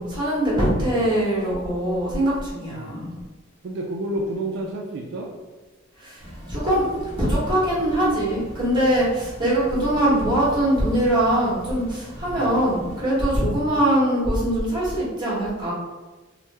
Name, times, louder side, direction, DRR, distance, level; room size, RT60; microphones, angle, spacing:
voice 1, 0.0-3.2 5.9-15.7, right 1 dB, 25° right, -8 dB, 1.3 m, -22 dB
voice 2, 2.7-3.1 3.6-5.3 12.2-12.5 13.7-13.8, right 1 dB, 60° right, -1 dB, 0.3 m, -30 dB
sound 1, 6.2-13.0, equal, 15° left, 0.9 m, -40 dB
3.0 x 2.1 x 3.3 m, 1.2 s
head